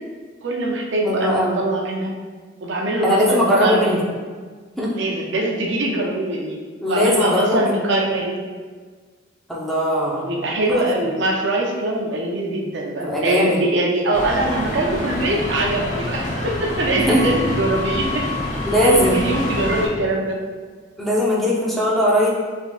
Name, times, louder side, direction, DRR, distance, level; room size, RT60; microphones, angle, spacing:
voice 1, 0.4-2.1 2.6-4.0 4.9-6.6 6.9-8.4 10.1-18.3 18.8-20.4, right 1 dB, 65° right, 0 dB, 0.5 m, -22 dB
voice 2, 1.0-1.6 3.0-4.0 4.8-4.9 6.8-7.8 9.5-10.3 10.7-10.8 13.0-13.6 17.0-17.2 18.6-19.2 21.0-22.3, equal, ahead, -6 dB, 0.7 m, -19 dB
sound 1, 14.1-19.9, left 2 dB, 40° left, 0.8 m, -26 dB
4.4 x 3.5 x 2.4 m, 1.5 s
head